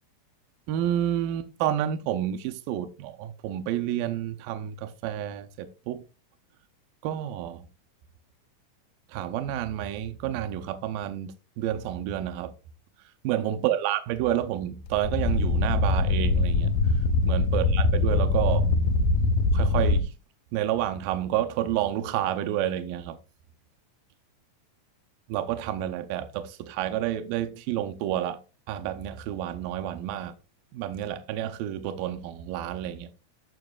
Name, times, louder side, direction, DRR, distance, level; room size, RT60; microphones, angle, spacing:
voice 1, 0.7-6.0 7.0-7.7 9.1-12.5 13.2-16.7 17.2-18.7 19.5-20.2 20.5-23.2 25.3-28.4 28.7-30.3 30.7-33.2, right 11 dB, 85° right, 2.3 m, -29 dB
sound 1, 14.8-20.0, left 3 dB, 80° left, 2.4 m, -23 dB
14.0 x 6.0 x 2.3 m
omnidirectional pair, 3.8 m